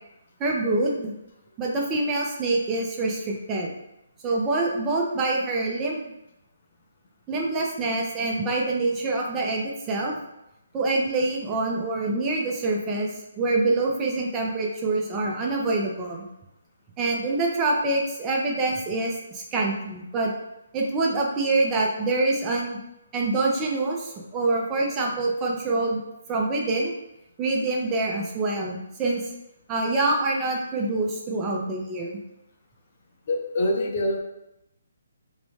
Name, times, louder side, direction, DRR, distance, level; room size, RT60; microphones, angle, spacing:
voice 1, 0.4-1.1 1.6-3.7 4.2-6.1 7.3-10.2 10.7-16.3 17.0-20.3 20.7-22.8 23.1-26.0 26.3-26.9 27.4-29.2 29.7-32.1, right 2 dB, 15° right, -1 dB, 0.4 m, -25 dB
voice 2, 33.3-34.2, left 1 dB, 45° left, 1 dB, 0.5 m, -25 dB
2.6 x 2.1 x 3.1 m, 0.87 s
hypercardioid pair, 160°, 0 cm